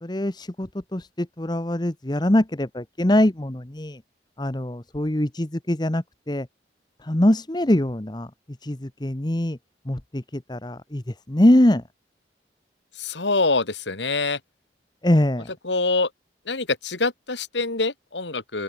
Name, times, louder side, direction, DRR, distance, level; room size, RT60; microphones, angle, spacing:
voice 1, 0.0-4.0 4.4-6.5 7.0-8.3 8.6-9.6 9.9-11.0 11.3-11.8 15.0-15.5, left 1 dB, 25° left, 1.0 m, -23 dB
voice 2, 13.0-14.4 15.6-16.1 16.5-18.6, left 3 dB, 85° left, 2.5 m, -25 dB
open air
head